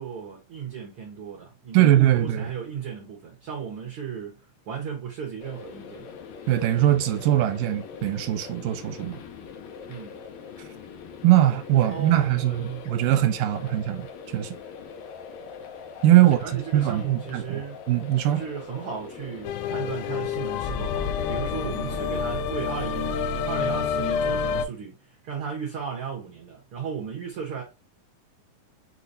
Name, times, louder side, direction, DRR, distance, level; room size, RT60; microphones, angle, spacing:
voice 1, 0.0-4.4 4.7-6.1 9.9-10.2 11.7-12.9 16.2-17.8 18.3-27.6, right 7 dB, 55° right, 1.6 m, -35 dB
voice 2, 1.7-2.5 6.5-9.2 11.2-14.6 16.0-17.6 17.9-18.4, right 13 dB, 85° right, 2.2 m, -21 dB
sound 1, 5.4-22.2, left 6 dB, 70° left, 1.8 m, -42 dB
sound 2, 19.4-24.7, left 6 dB, 85° left, 2.3 m, -28 dB
6.2 x 3.0 x 2.6 m
omnidirectional pair, 3.9 m